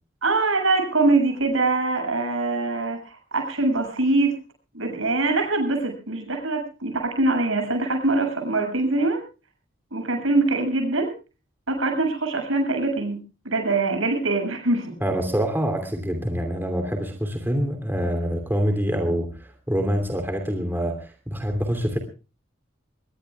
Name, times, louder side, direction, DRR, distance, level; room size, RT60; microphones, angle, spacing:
voice 1, 0.2-4.3 4.7-9.2 9.9-11.1 11.7-14.9, right 2 dB, 85° right, 4 dB, 7.2 m, -23 dB
voice 2, 15.0-22.0, equal, 10° right, 5 dB, 2.9 m, -26 dB
23.0 x 21.5 x 2.3 m, 0.34 s
head